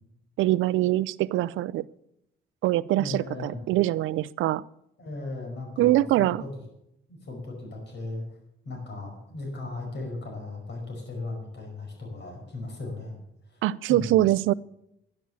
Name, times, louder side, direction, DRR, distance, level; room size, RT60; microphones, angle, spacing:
voice 1, 0.4-1.8 2.6-4.6 5.8-6.4 13.6-14.5, right 15 dB, 80° right, 20 dB, 0.4 m, -23 dB
voice 2, 3.0-3.6 5.0-6.5 7.1-8.2 8.7-13.2 13.5-13.6 13.9-14.2, left 2 dB, 60° left, 2 dB, 5.3 m, -37 dB
11.0 x 10.5 x 7.1 m, 0.81 s
cardioid pair, 90°, 20 cm